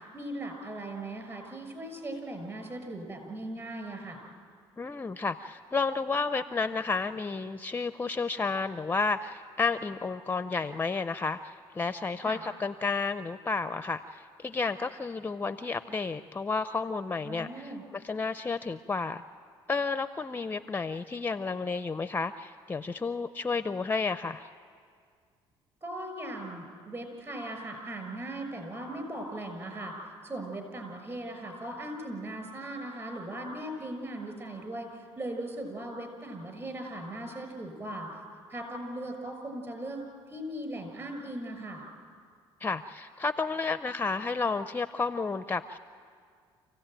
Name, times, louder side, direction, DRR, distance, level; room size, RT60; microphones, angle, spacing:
voice 1, 0.0-4.2 12.2-12.4 17.2-17.8 25.8-29.9 30.2-38.1 38.5-40.0 40.3-41.8, right 1 dB, 30° right, 5 dB, 6.2 m, -38 dB
voice 2, 4.8-19.2 19.7-24.5 42.6-45.8, left 4 dB, 20° left, 11 dB, 0.6 m, -31 dB
27.0 x 16.0 x 9.0 m, 2.1 s
cardioid pair, 100°, 10 cm